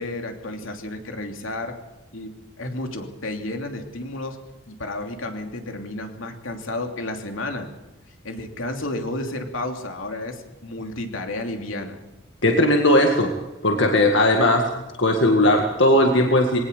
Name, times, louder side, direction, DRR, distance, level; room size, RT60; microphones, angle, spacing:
voice 1, 0.0-1.8 2.1-4.4 4.6-7.7 8.2-12.0, left 2 dB, 80° left, 4 dB, 3.0 m, -32 dB
voice 2, 12.4-13.3 13.6-14.6 15.0-16.6, left 1 dB, 65° left, 3 dB, 2.0 m, -18 dB
20.5 x 18.0 x 6.9 m, 1.1 s
head